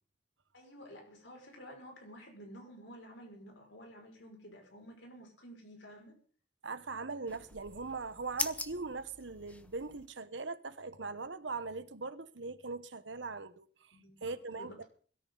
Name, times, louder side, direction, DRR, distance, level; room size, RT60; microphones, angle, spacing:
voice 1, 0.5-6.1 13.9-14.9, equal, 85° left, 6.0 m, -52 dB
voice 2, 6.6-14.7, right 3 dB, 85° right, 1.2 m, -40 dB
sound 1, 7.3-10.1, left 2 dB, 10° left, 0.7 m, -42 dB
21.5 x 13.5 x 4.0 m
head